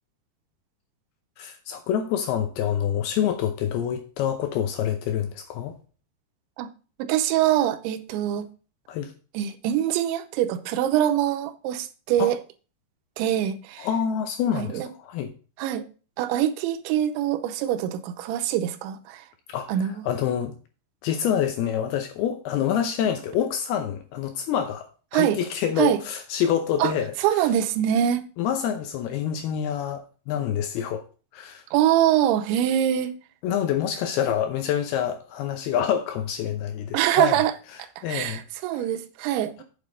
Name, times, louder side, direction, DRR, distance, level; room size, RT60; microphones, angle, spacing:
voice 1, 1.4-5.8 8.9-9.1 12.2-12.3 13.8-15.3 19.5-19.8 20.0-20.5 21.0-24.9 25.1-27.5 28.4-31.0 31.3-31.6 33.4-37.4 38.0-38.4 38.7-38.8, left 9 dB, 80° left, 2.4 m, -27 dB
voice 2, 7.0-8.5 9.3-12.4 13.2-13.9 14.6-14.9 15.6-15.8 16.2-19.2 19.7-20.0 25.1-25.4 25.8-26.0 26.8-26.9 27.2-28.2 31.7-33.1 36.9-37.5 38.1-39.6, right 11 dB, 85° right, 3.1 m, -24 dB
8.2 x 7.2 x 3.9 m
omnidirectional pair, 5.2 m